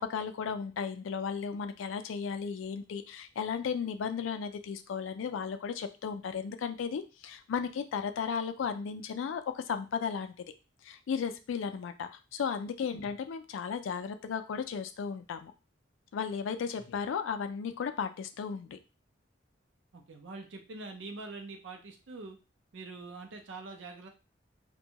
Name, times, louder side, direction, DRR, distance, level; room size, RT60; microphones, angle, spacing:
voice 1, 0.0-10.3 10.8-15.5 16.1-18.8, left 6 dB, 80° left, 10 dB, 0.3 m, -35 dB
voice 2, 19.9-22.4 22.7-24.1, right 3 dB, 75° right, 4 dB, 0.6 m, -44 dB
2.6 x 2.2 x 2.8 m, 0.31 s
head